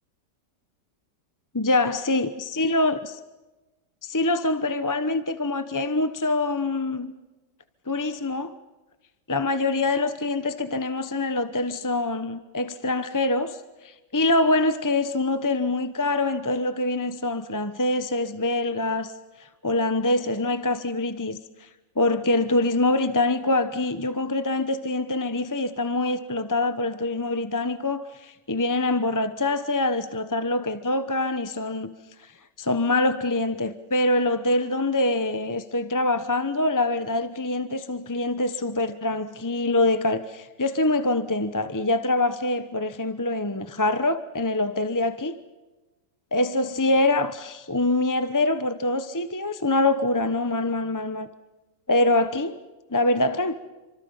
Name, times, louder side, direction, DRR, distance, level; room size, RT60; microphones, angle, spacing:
voice 1, 1.5-3.1 4.0-7.1 7.9-8.5 9.3-19.1 19.4-21.7 22.0-31.9 32.2-32.3 32.6-45.4 46.3-51.3 51.9-52.6 52.9-53.6, left 2 dB, 15° left, 0.6 m, -25 dB
29.5 x 25.5 x 5.7 m
omnidirectional pair, 1.9 m